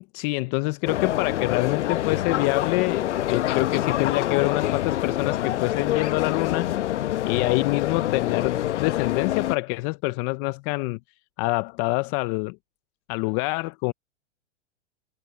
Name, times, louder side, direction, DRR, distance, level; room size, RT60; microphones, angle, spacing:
voice 1, 0.1-6.7 7.3-11.0 11.4-12.6 13.1-13.9, left 25 dB, 30° left, 0.5 m, -26 dB
sound 1, 0.8-9.6, left 13 dB, 75° left, 0.9 m, -26 dB
sound 2, 1.2-9.6, right 8 dB, 20° right, 7.6 m, -56 dB
hypercardioid pair, 130°, 36 cm